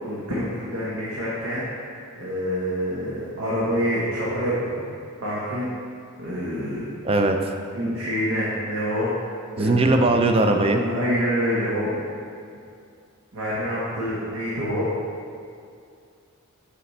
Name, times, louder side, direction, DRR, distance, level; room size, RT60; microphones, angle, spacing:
voice 1, 0.0-1.6 2.1-4.7 5.2-5.7 6.2-6.9 7.7-9.1 9.6-10.1 10.7-11.9 13.3-14.9, equal, 70° right, -8 dB, 1.1 m, -26 dB
voice 2, 7.0-7.5 9.6-10.8, right 2 dB, 25° right, 5 dB, 0.3 m, -19 dB
8.1 x 4.2 x 3.2 m, 2.4 s
head